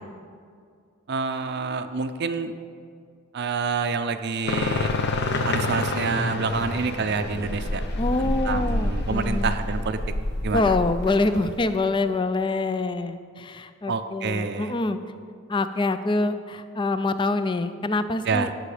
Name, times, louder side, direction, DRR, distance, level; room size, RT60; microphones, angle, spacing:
voice 1, 1.1-2.5 3.3-4.9 5.5-7.8 8.2-10.0 10.4-10.7 13.9-14.7 18.2-18.5, right 4 dB, 50° right, 9 dB, 0.5 m, -27 dB
sound 1, 4.5-11.7, left 2 dB, 50° left, 0.8 m, -28 dB
voice 2, 8.0-9.6 10.5-15.0 15.5-18.5, left 3 dB, 20° left, 11 dB, 0.4 m, -25 dB
17.0 x 6.2 x 4.9 m, 2.2 s
head